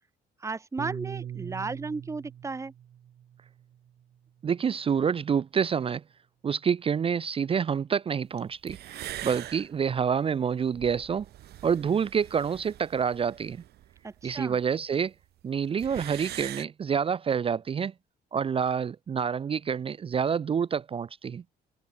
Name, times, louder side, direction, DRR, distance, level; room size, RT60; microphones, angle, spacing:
voice 1, 0.4-2.7 14.0-14.6, right 3 dB, 15° right, 1.2 m, -34 dB
Piano, 0.8-5.2, right 10 dB, 50° right, 1.1 m, -42 dB
voice 2, 4.4-6.0 6.4-11.3 11.6-13.6 14.2-15.1 15.4-17.9 18.3-21.4, right 7 dB, 35° right, 0.6 m, -27 dB
sound 1, 8.4-8.5 8.7-14.7 14.9-15.0 15.2-15.3 15.6-16.7, right 14 dB, 70° right, 1.1 m, -43 dB
cardioid pair, 115°, 17 cm